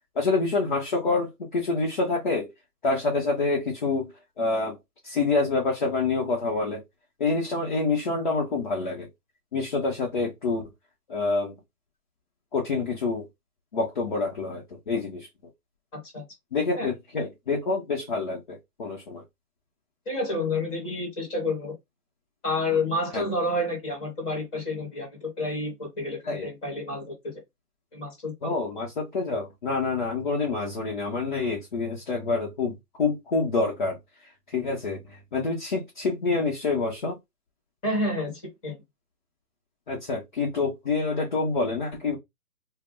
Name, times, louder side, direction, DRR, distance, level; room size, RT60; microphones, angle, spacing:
voice 1, 0.2-2.5 2.8-4.8 5.0-6.8 7.2-9.1 9.5-10.6 11.1-11.5 12.5-13.2 13.7-15.3 16.5-19.2 23.1-23.2 26.2-26.5 28.4-34.0 34.5-37.2 39.9-42.2, left 3 dB, 30° left, 0.6 m, -27 dB
voice 2, 15.9-16.2 16.7-16.9 20.0-21.7 22.4-27.4 27.9-28.5 37.8-38.7, left 2 dB, 10° left, 1.0 m, -29 dB
2.5 x 2.1 x 3.6 m
figure-of-eight pair, 145°, 47 cm